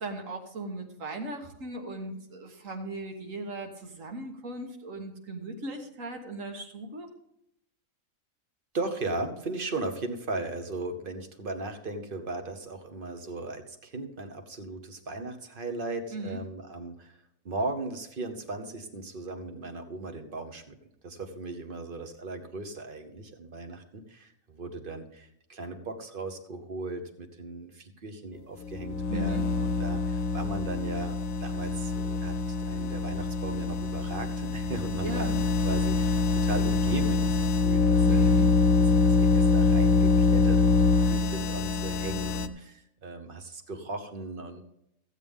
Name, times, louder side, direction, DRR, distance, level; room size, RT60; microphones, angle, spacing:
voice 1, 0.0-7.1 16.1-16.4 29.1-29.4 35.0-35.4 38.0-38.5, right 2 dB, 70° right, 4 dB, 1.8 m, -38 dB
voice 2, 8.7-17.2 17.4-20.8 21.0-44.6, right 2 dB, 40° right, 7 dB, 1.1 m, -37 dB
sound 1, 28.6-42.5, left 4 dB, 80° left, 1.1 m, -25 dB
15.0 x 8.2 x 3.6 m, 0.78 s
omnidirectional pair, 1.4 m